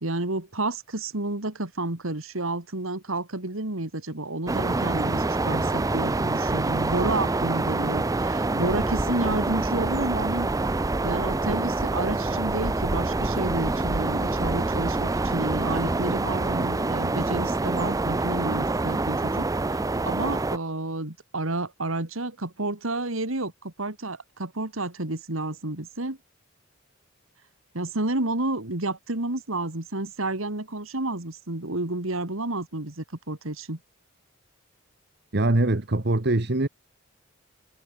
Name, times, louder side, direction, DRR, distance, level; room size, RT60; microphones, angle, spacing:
voice 1, 0.0-10.5 11.0-26.2 27.7-33.8, right 2 dB, 75° right, 2.8 m, -30 dB
sound 1, 4.5-20.6, right 2 dB, 15° right, 0.4 m, -26 dB
voice 2, 35.3-36.7, right 2 dB, 50° right, 1.4 m, -22 dB
head